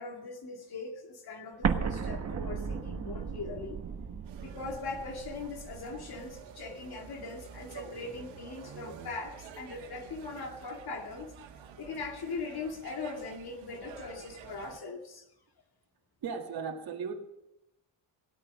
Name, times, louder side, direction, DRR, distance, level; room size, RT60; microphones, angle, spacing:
voice 1, 0.0-3.8 4.4-11.3 11.8-15.3, left 3 dB, 55° left, 2 dB, 2.3 m, -40 dB
Explosion, 1.6-6.4, right 6 dB, 35° right, 1.3 m, -35 dB
sound 1, 4.2-14.8, right 7 dB, 85° right, 1.9 m, -49 dB
voice 2, 16.2-17.2, right 5 dB, 55° right, 1 dB, 2.0 m, -36 dB
18.0 x 9.0 x 6.3 m, 0.87 s
cardioid pair, 125°, 46 cm